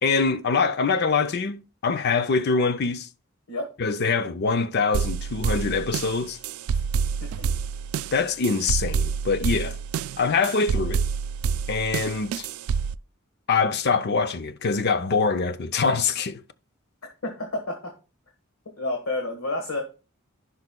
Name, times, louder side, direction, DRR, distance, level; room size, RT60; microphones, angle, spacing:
voice 1, 0.0-3.1 3.8-6.4 8.1-9.8 10.2-11.0 11.7-12.5 13.5-16.4, left 4 dB, 50° left, 0.5 m, -24 dB
sound 1, 4.9-13.0, right 6 dB, 80° right, 0.3 m, -28 dB
voice 2, 7.2-7.5 17.0-17.9 18.8-19.8, left 2 dB, 90° left, 1.4 m, -30 dB
15.0 x 5.4 x 2.2 m
head